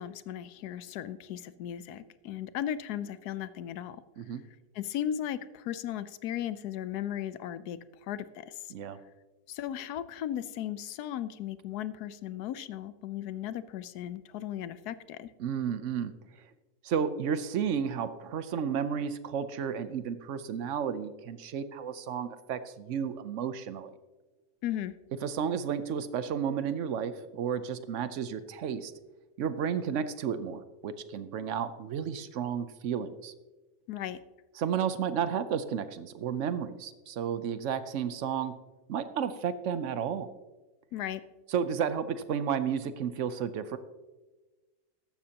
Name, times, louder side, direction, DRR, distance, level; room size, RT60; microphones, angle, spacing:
voice 1, 0.0-4.0 4.7-7.8 8.1-8.6 9.5-15.3 24.6-24.9 33.9-34.2 40.9-41.2, left 11 dB, 80° left, 15 dB, 1.2 m, -36 dB
voice 2, 15.4-16.1 16.8-23.9 25.2-28.9 29.4-33.3 34.6-38.5 38.9-40.3 41.5-43.8, right 7 dB, 60° right, 12 dB, 0.9 m, -32 dB
14.5 x 11.5 x 2.9 m, 1.2 s
omnidirectional pair, 1.6 m